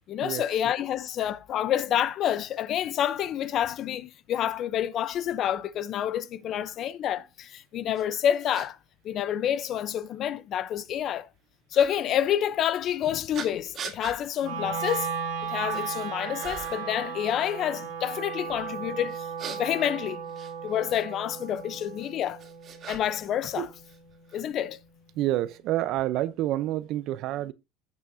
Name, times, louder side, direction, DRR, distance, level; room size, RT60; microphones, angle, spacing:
voice 1, 0.1-8.8 9.0-11.3 11.7-15.1 15.4-20.2 20.6-22.4 22.9-23.7 24.3-24.8, left 10 dB, 45° left, 0.7 m, -28 dB
sound 1, 7.9-8.0 8.5-8.7 9.6-9.7 11.7-11.9 13.3-14.2 14.8-15.0 15.4-15.9 16.4-16.9 19.1-21.0 22.0-23.3 23.5-24.4, right 7 dB, 40° right, 2.2 m, -40 dB
Wind instrument woodwind instrument, 14.4-24.6, right 7 dB, 80° right, 2.9 m, -36 dB
voice 2, 25.1-27.5, right 14 dB, 55° right, 0.7 m, -28 dB
15.5 x 5.9 x 2.7 m
supercardioid pair, 120°, 0 cm